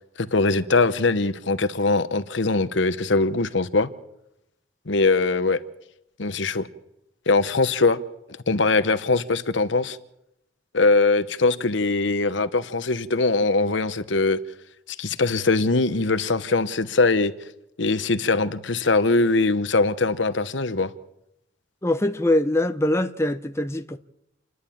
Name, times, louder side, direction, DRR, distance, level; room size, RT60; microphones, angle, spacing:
voice 1, 0.2-3.9 4.9-5.6 6.2-6.7 7.3-8.0 8.5-10.0 10.7-14.4 15.0-17.3 17.8-20.9, left 3 dB, 70° left, 1.0 m, -21 dB
voice 2, 21.8-24.0, left 1 dB, 15° left, 0.7 m, -23 dB
28.5 x 11.0 x 8.6 m
head